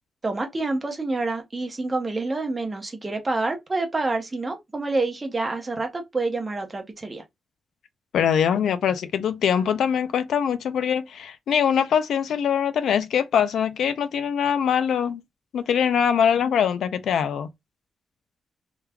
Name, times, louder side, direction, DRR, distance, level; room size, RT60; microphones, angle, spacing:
voice 1, 0.2-7.2, right 3 dB, 20° right, 0.8 m, -27 dB
voice 2, 8.1-15.2 15.5-17.5, left 8 dB, 75° left, 0.4 m, -23 dB
3.5 x 3.1 x 2.3 m
wide cardioid pair, 165°, 0 cm